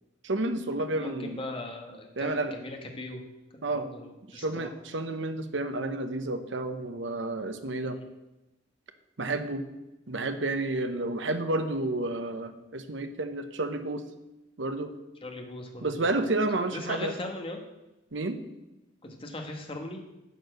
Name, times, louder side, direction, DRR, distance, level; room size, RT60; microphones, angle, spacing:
voice 1, 0.2-1.4 2.2-2.5 3.6-3.9 4.3-8.0 9.2-9.6 10.1-14.0 14.6-14.9 15.8-17.1 18.1-18.4, right 2 dB, 65° right, 9 dB, 0.9 m, -30 dB
voice 2, 1.0-3.2 3.7-4.7 7.8-8.0 15.2-16.2 16.7-17.6 19.0-20.0, left 2 dB, 25° left, 3 dB, 1.4 m, -39 dB
10.0 x 4.6 x 7.8 m, 0.96 s
head